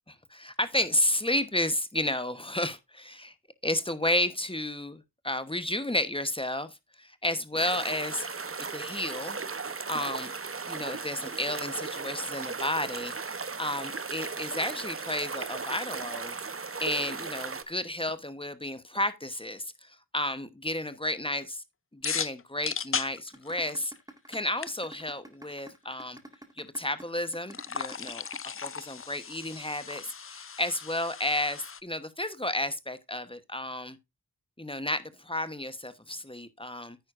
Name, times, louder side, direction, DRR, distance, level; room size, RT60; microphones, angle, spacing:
voice 1, 0.3-3.3 3.6-8.3 8.7-9.4 9.9-10.3 10.7-16.4 16.8-21.6 21.9-23.9 24.3-26.2 26.6-28.2 28.6-34.0 34.6-37.0, left 1 dB, 15° left, 1.0 m, -32 dB
sound 1, 7.6-17.6, right 4 dB, 35° right, 0.9 m, -36 dB
sound 2, 22.0-24.0 24.3-24.4 24.6-24.7 27.5-31.8, left 6 dB, 40° left, 0.5 m, -36 dB
sound 3, 23.3-29.3, right 1 dB, 10° right, 1.9 m, -47 dB
9.8 x 9.2 x 2.5 m
wide cardioid pair, 55°, 36 cm